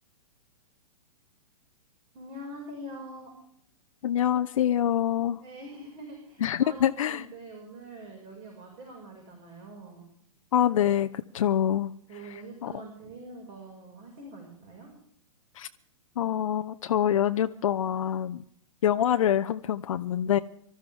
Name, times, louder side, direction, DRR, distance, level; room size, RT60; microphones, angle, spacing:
voice 1, 2.1-3.3 5.4-10.1 12.1-14.9, right 1 dB, 35° right, 1 dB, 5.7 m, -44 dB
voice 2, 4.0-5.4 6.4-7.3 10.5-11.9 12.6-12.7 15.6-15.7 16.2-18.4 18.8-20.4, left 10 dB, 65° left, 8 dB, 0.7 m, -25 dB
25.0 x 13.5 x 3.6 m, 0.69 s
hypercardioid pair, 115°, 18 cm